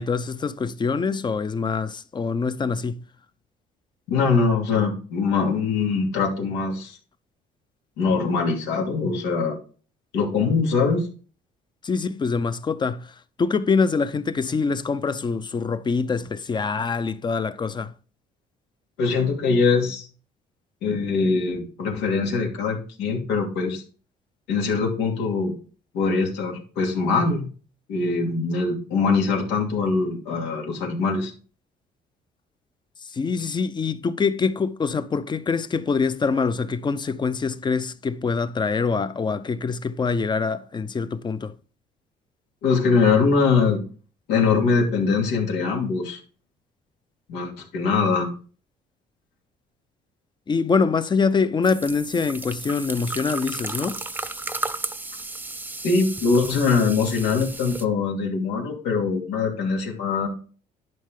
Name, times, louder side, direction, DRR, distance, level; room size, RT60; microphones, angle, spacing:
voice 1, 0.0-3.0 11.8-17.9 33.0-41.5 50.5-54.0, left 5 dB, 25° left, 0.7 m, -24 dB
voice 2, 4.1-7.0 8.0-9.6 10.1-11.1 19.0-20.1 20.8-23.8 24.5-25.5 25.9-27.5 27.9-31.3 42.6-43.8 44.3-46.2 47.3-48.3 55.8-60.3, left 4 dB, 90° left, 2.7 m, -22 dB
sound 1, 51.6-57.8, right 2 dB, 10° right, 0.7 m, -34 dB
10.5 x 5.6 x 3.8 m
cardioid pair, 110°, 17 cm